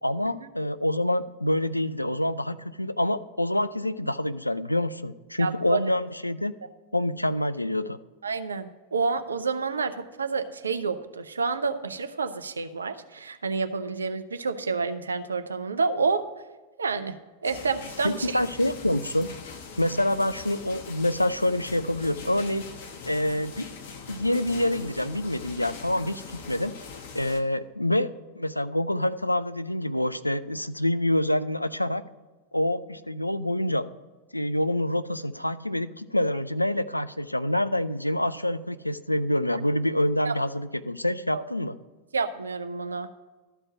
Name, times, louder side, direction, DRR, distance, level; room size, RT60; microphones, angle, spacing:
voice 1, 0.0-6.6 6.9-8.0 18.0-19.3 19.8-22.7 23.1-23.7 24.1-26.8 27.1-32.0 32.5-33.9 34.3-41.7, left 1 dB, 85° left, 13 dB, 0.4 m, -26 dB
voice 2, 5.4-5.8 8.2-16.2 16.8-17.2 17.4-18.4 26.5-26.6 40.3-40.4 41.3-41.4 42.1-43.1, right 4 dB, 75° right, 9 dB, 0.6 m, -29 dB
sound 1, 17.4-27.4, left 5 dB, 55° left, 1.0 m, -42 dB
13.0 x 4.5 x 6.1 m, 1.3 s
figure-of-eight pair, 90°, 0 cm